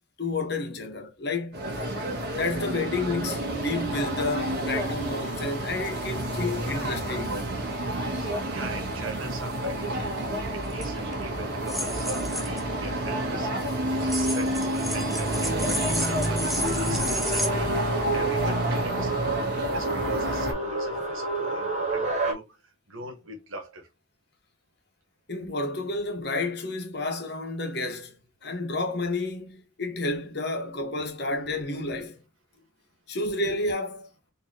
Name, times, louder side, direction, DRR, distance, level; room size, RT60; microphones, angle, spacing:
voice 1, 0.2-1.6 2.3-7.5 25.3-32.2 33.1-34.1, left 2 dB, 55° left, 1.1 m, -30 dB
sound 1, 1.5-20.5, right 1 dB, 50° right, 1.5 m, -29 dB
voice 2, 8.0-17.7 18.1-23.9 32.5-32.7, right 2 dB, 85° right, 1.4 m, -41 dB
sound 2, 10.7-10.9 11.7-12.6 14.0-17.5, equal, ahead, 0.4 m, -32 dB
sound 3, 16.6-22.3, right 2 dB, 35° right, 1.1 m, -29 dB
4.3 x 3.0 x 2.8 m
head